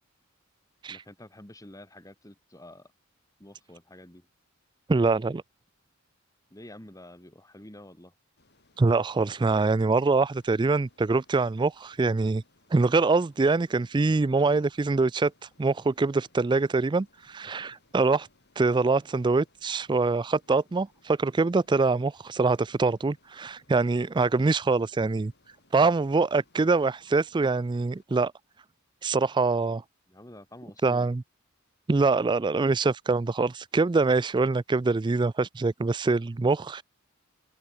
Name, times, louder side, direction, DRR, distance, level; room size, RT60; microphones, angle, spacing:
voice 1, 0.9-2.9 3.4-4.3 6.5-8.1 30.1-31.2, left 1 dB, 15° left, 3.0 m, -48 dB
voice 2, 4.9-5.4 8.8-12.4 12.7-15.3 15.6-18.3 18.6-25.3 25.7-28.3 29.0-29.8 30.8-31.2 31.9-36.8, right 3 dB, 20° right, 0.4 m, -24 dB
Ocean, 8.4-28.0, left 2 dB, 55° left, 5.9 m, -65 dB
head